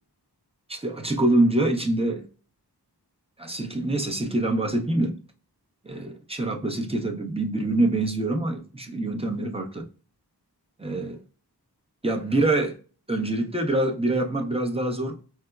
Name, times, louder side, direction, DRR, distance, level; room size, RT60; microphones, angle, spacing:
voice 1, 0.7-2.3 3.4-5.2 5.8-9.8 10.8-11.2 12.0-12.8 13.1-15.2, right 2 dB, 15° right, 0.6 m, -25 dB
4.5 x 2.0 x 2.2 m
wide cardioid pair, 55°, 40 cm